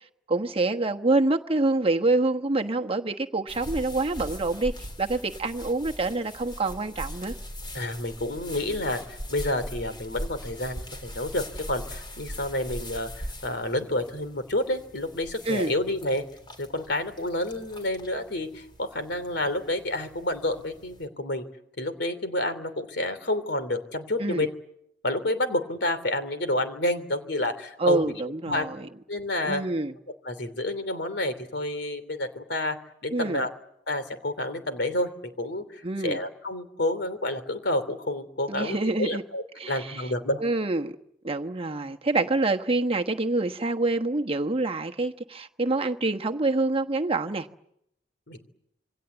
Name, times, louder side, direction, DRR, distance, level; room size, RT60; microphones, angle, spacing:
voice 1, 0.3-4.7 5.0-7.3 15.4-15.7 24.2-24.5 27.8-28.9 29.4-29.9 33.1-33.5 35.8-36.2 38.5-39.2 39.6-40.1 40.4-40.9 41.2-47.5, right 2 dB, 30° right, 1.2 m, -26 dB
sound 1, 3.5-21.1, equal, 25° left, 3.6 m, -41 dB
voice 2, 7.7-9.0 9.3-16.2 16.6-21.4 21.8-24.5 25.0-28.2 28.5-28.7 29.1-29.6 30.2-32.8 33.0-33.5 33.9-35.1 35.4-40.4 48.3-48.4, left 1 dB, 65° left, 3.1 m, -29 dB
27.5 x 23.5 x 8.1 m
head